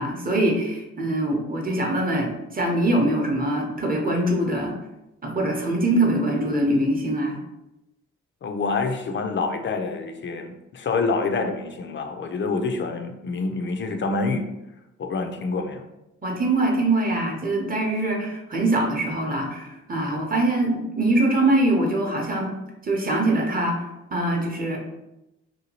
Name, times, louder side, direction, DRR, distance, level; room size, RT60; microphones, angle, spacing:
voice 1, 0.0-4.8 5.2-7.4 16.2-22.5 22.8-23.8 24.1-24.8, right 1 dB, 30° right, 0 dB, 0.7 m, -23 dB
voice 2, 8.4-14.5 15.0-15.8, left 4 dB, 40° left, 5 dB, 0.4 m, -27 dB
2.8 x 2.2 x 2.9 m, 0.94 s
cardioid pair, 65°, 30 cm